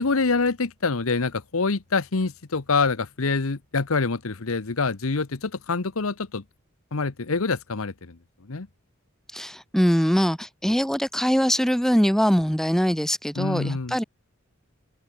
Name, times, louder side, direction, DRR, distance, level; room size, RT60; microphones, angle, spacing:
voice 1, 0.0-6.4 6.9-8.7 13.4-14.0, left 4 dB, 75° left, 1.0 m, -26 dB
voice 2, 9.3-14.0, equal, ahead, 1.3 m, -22 dB
head